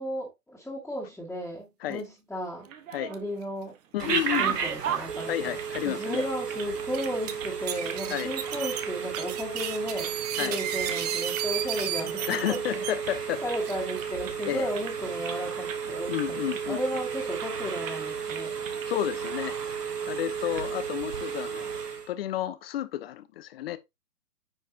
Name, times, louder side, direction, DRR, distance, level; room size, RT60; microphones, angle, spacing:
voice 1, 0.0-2.7 3.1-3.7 4.4-5.3 5.8-12.8 13.4-18.6, equal, ahead, 2.0 m, -34 dB
sound 1, 2.6-3.4 3.8-6.7 7.0-8.0 8.3-8.5 8.7-9.3 9.6-10.2 10.5-11.5 11.8-11.9 12.2-12.4 12.6-13.2 13.5-15.4 15.7-15.8 16.1-17.0 17.4-17.6 17.8-18.0 18.3-18.9 19.2-19.3 20.3-20.6, right 8 dB, 55° right, 1.5 m, -37 dB
sound 2, 2.9-3.1 3.4-3.5 4.1-4.4 5.2-5.3 5.8-5.9 6.8-7.3 7.7-12.9 13.6-14.0, right 10 dB, 25° right, 0.6 m, -33 dB
voice 2, 3.9-4.6 5.3-6.3 8.1-8.3 10.4-10.6 12.3-13.4 14.5-14.7 16.1-16.8 18.9-19.6 20.1-21.7 22.1-23.8, left 13 dB, 40° left, 0.9 m, -31 dB
Telephone, 4.0-22.1, right 7 dB, 75° right, 1.6 m, -34 dB
9.7 x 4.8 x 2.8 m
hypercardioid pair, 130°, 47 cm